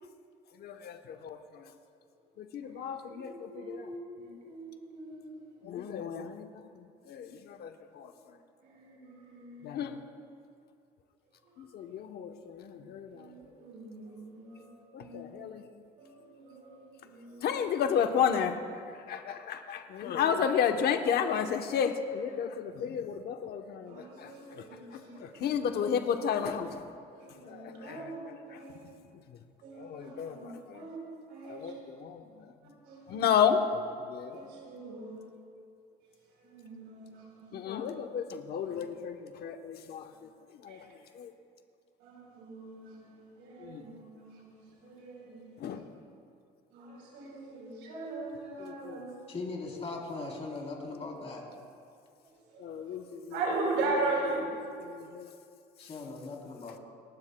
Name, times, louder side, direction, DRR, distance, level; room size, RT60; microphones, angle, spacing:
voice 1, 0.6-1.7 2.4-3.9 5.6-8.1 9.6-10.0 11.6-13.3 14.9-15.7 17.4-18.6 18.9-24.6 24.9-26.9 27.5-28.1 28.5-28.6 29.8-30.9 31.5-32.5 33.1-33.8 34.1-34.4 37.5-40.1 40.6-40.8 41.1-41.3 43.6-43.8 45.6-45.8 48.6-49.0 52.6-53.4 54.8-55.3, left 7 dB, 60° left, 6 dB, 0.9 m, -32 dB
voice 2, 2.6-3.9 4.2-5.4 5.8-5.9 7.2-7.3 8.6-9.9 11.4-11.6 13.1-15.4 16.0-17.5 23.8-25.7 27.2-28.8 29.6-30.5 30.7-31.0 31.3-31.7 32.8-33.1 34.3-35.3 36.4-37.9 38.7-38.8 40.1-40.2 40.7-40.9 42.0-45.5 46.7-49.2 52.5-53.0 53.3-54.5, right 3 dB, 85° right, -1 dB, 3.8 m, -40 dB
voice 3, 49.3-51.4 55.8-56.8, left 3 dB, 35° left, -1 dB, 3.4 m, -39 dB
28.5 x 12.0 x 2.2 m, 2.4 s
cardioid pair, 110°, 18 cm